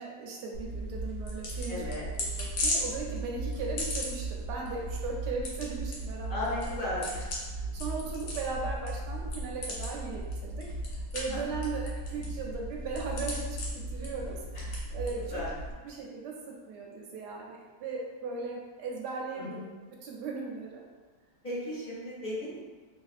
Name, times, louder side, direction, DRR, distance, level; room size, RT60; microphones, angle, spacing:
voice 1, 0.0-1.8 2.4-6.6 7.5-10.6 10.9-13.6 13.9-15.4 15.8-16.3 16.7-19.6 20.0-20.8, right 4 dB, 80° right, -1 dB, 1.2 m, -38 dB
sound 1, 0.5-15.7, equal, 80° left, 1.3 m, -36 dB
voice 2, 1.7-2.1 6.3-7.2 11.3-11.4 14.5-14.6 15.1-15.5 19.3-19.6 21.4-22.6, left 1 dB, 35° left, -11 dB, 1.0 m, -35 dB
3.0 x 2.5 x 2.4 m, 1.3 s
omnidirectional pair, 1.8 m